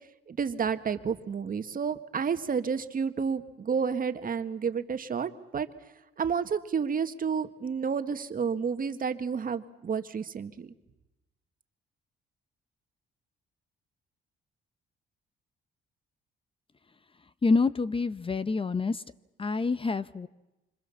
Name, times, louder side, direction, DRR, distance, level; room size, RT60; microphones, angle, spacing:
voice 1, 0.3-5.7 6.2-10.7, right 6 dB, 45° right, 9 dB, 1.7 m, -30 dB
voice 2, 17.4-19.0 19.4-20.3, left 4 dB, 25° left, 14 dB, 0.9 m, -27 dB
26.5 x 26.0 x 7.1 m, 0.99 s
cardioid pair, 90°, 20 cm